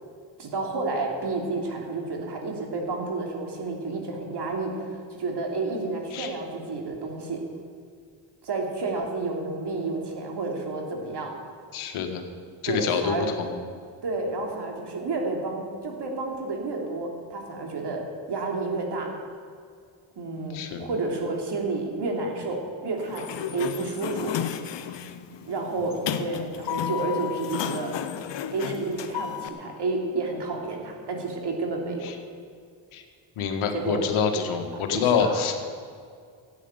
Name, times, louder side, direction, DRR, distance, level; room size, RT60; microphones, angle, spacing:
voice 1, 0.4-7.4 8.4-11.3 12.7-13.3 14.0-19.1 20.2-24.4 25.5-28.0 28.5-32.1 33.7-34.0 34.7-35.4, right 3 dB, 55° right, 1 dB, 3.1 m, -30 dB
voice 2, 11.7-12.3 12.6-13.6 20.5-20.8 32.0-32.1 32.9-33.0 33.4-35.6, left 6 dB, 75° left, 5 dB, 1.7 m, -26 dB
Sliding door, 23.0-29.5, left 10 dB, 55° left, 1.0 m, -33 dB
13.0 x 9.4 x 8.2 m, 2.2 s
supercardioid pair, 65°, 50 cm